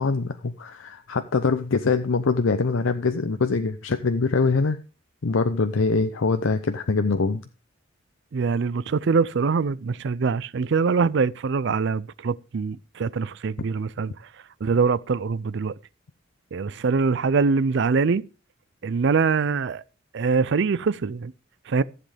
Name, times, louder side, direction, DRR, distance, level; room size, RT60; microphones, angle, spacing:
voice 1, 0.0-4.8 5.2-7.4, left 4 dB, 85° left, 0.6 m, -23 dB
voice 2, 8.3-14.1 14.6-15.7 16.5-18.2 18.8-19.8 20.1-21.3 21.7-21.8, right 5 dB, 65° right, 0.4 m, -23 dB
15.0 x 7.7 x 3.4 m
head